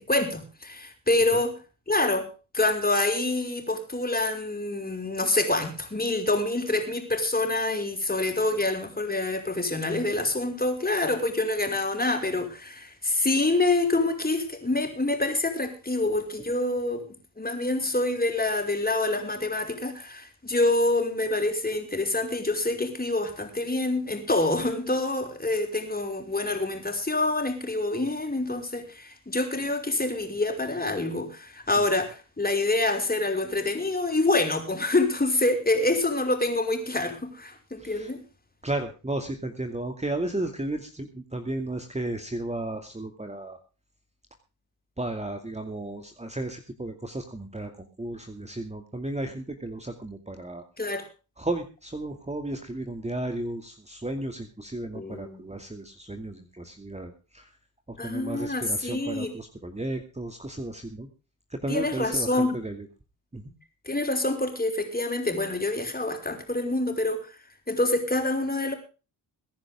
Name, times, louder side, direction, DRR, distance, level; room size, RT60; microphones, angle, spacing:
voice 1, 0.0-1.5 1.9-2.3 2.5-17.1 17.4-38.2 50.8-51.0 54.9-55.5 58.0-59.3 61.7-62.6 63.9-67.3 67.7-68.7, left 2 dB, 20° left, 4 dB, 5.5 m, -26 dB
voice 2, 37.8-38.1 38.6-43.6 45.0-50.6 51.4-57.5 57.9-61.1 61.5-62.9 63.3-63.5, right 1 dB, 15° right, 6 dB, 2.4 m, -34 dB
22.5 x 10.5 x 3.7 m, 0.34 s
hypercardioid pair, 50°, 49 cm